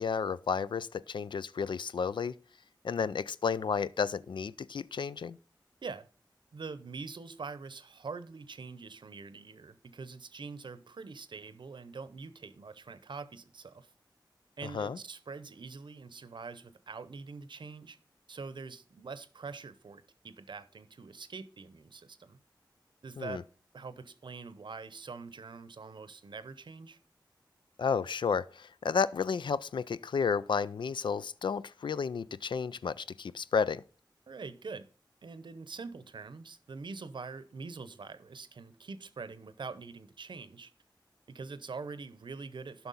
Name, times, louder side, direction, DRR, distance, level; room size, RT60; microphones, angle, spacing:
voice 1, 0.0-2.3 2.8-5.4 14.7-15.0 23.2-23.4 27.8-33.8, left 6 dB, 75° left, 0.3 m, -32 dB
voice 2, 6.5-13.9 14.6-18.0 18.3-22.4 23.0-23.5 23.7-27.0 34.3-34.9 35.2-40.7 41.3-42.9, right 4 dB, 70° right, 0.7 m, -44 dB
11.5 x 5.9 x 4.0 m
wide cardioid pair, 65°, 8 cm